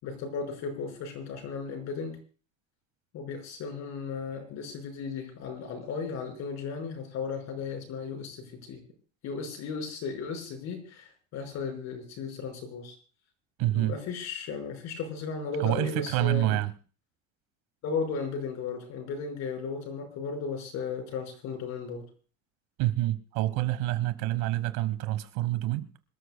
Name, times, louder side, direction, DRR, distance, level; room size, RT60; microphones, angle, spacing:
voice 1, 0.0-2.2 3.1-8.8 9.2-13.0 13.7-16.6 17.8-22.0, left 5 dB, 50° left, 5.5 m, -35 dB
voice 2, 13.6-13.9 15.6-16.7 22.8-25.9, right 15 dB, 80° right, 1.3 m, -27 dB
26.5 x 13.5 x 2.3 m
cardioid pair, 175°, 34 cm